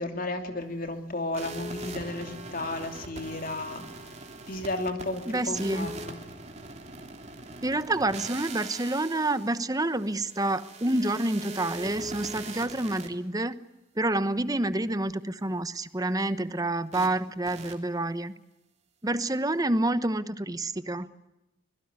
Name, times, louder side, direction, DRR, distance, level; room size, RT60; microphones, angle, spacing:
voice 1, 0.0-3.9 4.5-6.2, left 2 dB, 45° left, 6 dB, 2.9 m, -33 dB
sound 1, 1.3-13.1 16.9-17.1 17.5-17.7, right 2 dB, 35° right, 3.2 m, -41 dB
voice 2, 5.3-5.9 7.6-13.6 14.0-18.3 19.0-21.1, right 2 dB, 20° right, 13 dB, 1.0 m, -28 dB
25.0 x 21.5 x 9.7 m, 0.95 s
head